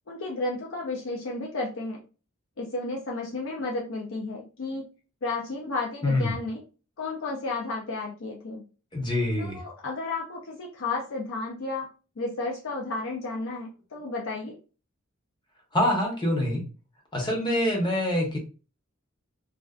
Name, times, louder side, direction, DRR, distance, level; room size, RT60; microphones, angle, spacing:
voice 1, 0.1-2.0 2.6-4.9 5.2-6.6 7.0-8.6 9.4-14.6, left 3 dB, 70° left, -2 dB, 0.5 m, -32 dB
voice 2, 8.9-9.6 15.7-16.6 17.1-18.4, left 1 dB, 20° left, 0 dB, 0.7 m, -25 dB
2.4 x 2.4 x 2.2 m, 0.35 s
head